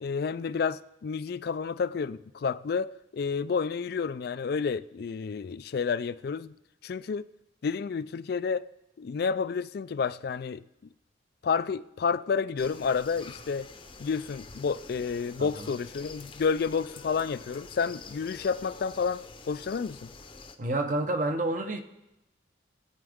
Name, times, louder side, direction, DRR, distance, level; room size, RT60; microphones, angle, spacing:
voice 1, 0.0-6.5 6.8-7.3 7.6-8.7 9.0-10.6 11.4-13.7 14.0-20.1, left 5 dB, 50° left, 0.3 m, -30 dB
sound 1, 12.6-20.6, left 4 dB, 25° left, 0.7 m, -47 dB
voice 2, 15.4-15.7 20.6-21.8, right 2 dB, 40° right, 0.9 m, -29 dB
19.0 x 8.8 x 3.6 m
head